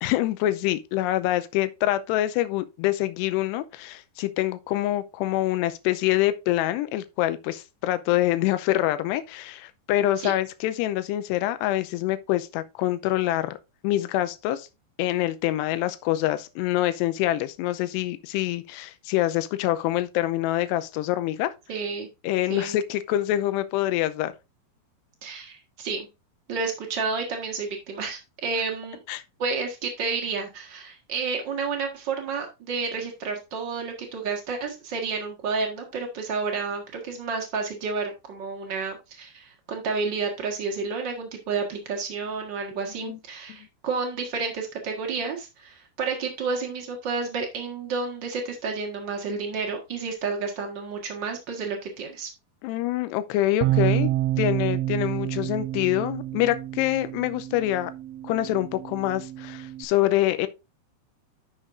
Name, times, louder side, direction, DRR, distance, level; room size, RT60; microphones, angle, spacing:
voice 1, 0.0-13.6 13.8-14.7 15.0-21.5 22.2-24.3 29.1-29.2 43.0-43.2 52.6-54.1 54.4-57.9 58.2-60.5, left 14 dB, 85° left, 2.7 m, -25 dB
voice 2, 21.7-22.1 22.5-22.8 25.2-26.1 26.5-29.0 29.4-52.3, right 4 dB, 70° right, 1.0 m, -30 dB
Bass guitar, 53.6-59.9, right 15 dB, 90° right, 2.9 m, -28 dB
11.0 x 6.5 x 2.6 m
omnidirectional pair, 5.0 m